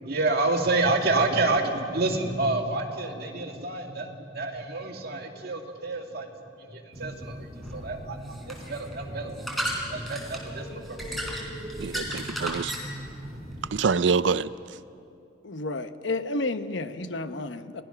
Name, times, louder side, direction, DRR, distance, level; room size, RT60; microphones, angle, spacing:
voice 1, 0.1-12.1, right 2 dB, 55° right, 2 dB, 2.2 m, -29 dB
sound 1, 6.9-13.8, equal, ahead, 3.8 m, -35 dB
voice 2, 11.8-12.7 13.7-14.8, right 5 dB, 70° right, 16 dB, 0.5 m, -26 dB
voice 3, 15.4-17.8, left 2 dB, 70° left, 10 dB, 1.0 m, -31 dB
30.0 x 19.0 x 5.9 m, 2.5 s
head